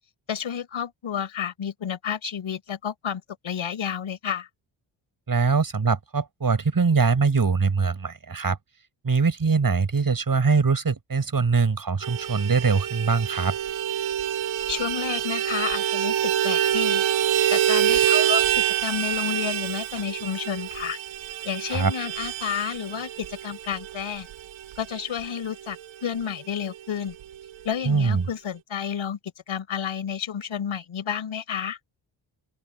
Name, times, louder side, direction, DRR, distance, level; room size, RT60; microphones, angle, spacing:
voice 1, 0.3-4.5 14.7-17.0 17.5-21.0 21.4-24.3 24.8-27.1 27.6-29.2 29.5-31.8, left 8 dB, 80° left, 4.8 m, -31 dB
voice 2, 5.3-8.6 9.0-13.6 21.7-21.9 27.8-28.2, right 4 dB, 45° right, 6.7 m, -22 dB
Vehicle horn car horn honking, 12.0-25.9 26.2-26.3 26.6-26.8 27.1-27.8, right 11 dB, 80° right, 0.9 m, -26 dB
open air
cardioid pair, 75°, 47 cm